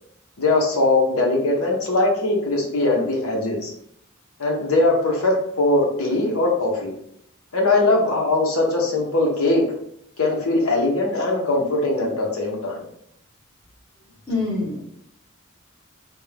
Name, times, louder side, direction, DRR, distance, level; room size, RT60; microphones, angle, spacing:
voice 1, 0.4-3.7 4.4-6.9 7.5-9.6 10.2-12.8, left 2 dB, 90° left, -1 dB, 1.1 m, -21 dB
voice 2, 14.3-14.9, left 3 dB, 25° left, -5 dB, 1.3 m, -25 dB
3.5 x 2.5 x 3.4 m, 0.70 s
head